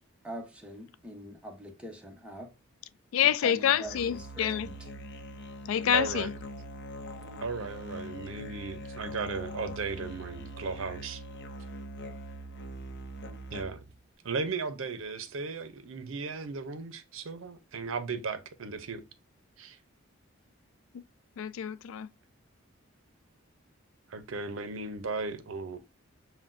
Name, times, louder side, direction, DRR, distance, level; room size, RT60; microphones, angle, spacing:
voice 1, 0.2-2.5 3.4-4.7, right 1 dB, 5° right, 0.8 m, -43 dB
voice 2, 3.1-4.7 5.7-6.3 21.4-22.1, left 9 dB, 85° left, 0.3 m, -27 dB
Musical instrument, 3.8-14.0, equal, 60° left, 0.7 m, -42 dB
voice 3, 5.9-6.3 7.4-11.2 13.5-13.8 14.2-19.0 19.6-19.8 24.1-25.8, right 4 dB, 75° right, 0.6 m, -36 dB
5.9 x 2.2 x 2.5 m
head